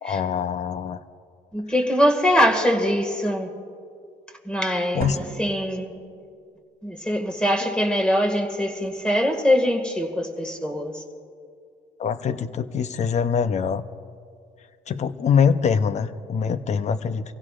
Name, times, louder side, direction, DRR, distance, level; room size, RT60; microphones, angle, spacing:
voice 1, 0.0-1.0 4.9-5.2 12.0-13.8 14.9-17.4, left 6 dB, 45° left, 12 dB, 0.7 m, -23 dB
voice 2, 1.5-3.5 4.5-5.9 6.8-11.0, equal, 5° left, 3 dB, 1.9 m, -23 dB
sound 1, 5.0-6.7, right 5 dB, 65° right, 1.2 m, -37 dB
25.0 x 16.0 x 2.5 m, 2.3 s
cardioid pair, 110°, 17 cm